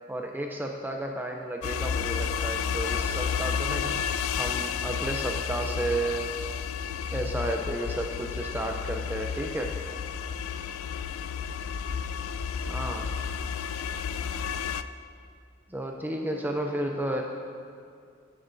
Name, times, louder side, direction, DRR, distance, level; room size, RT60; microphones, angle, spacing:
voice 1, 0.1-4.0 4.4-6.3 7.1-9.7 12.7-13.1 15.7-17.2, right 1 dB, 10° right, 2 dB, 0.5 m, -32 dB
sound 1, 1.6-14.8, left 7 dB, 80° left, 0.4 m, -31 dB
voice 2, 10.8-11.8 16.1-17.2, left 1 dB, 50° left, -6 dB, 2.7 m, -54 dB
15.0 x 9.8 x 2.7 m, 2.3 s
head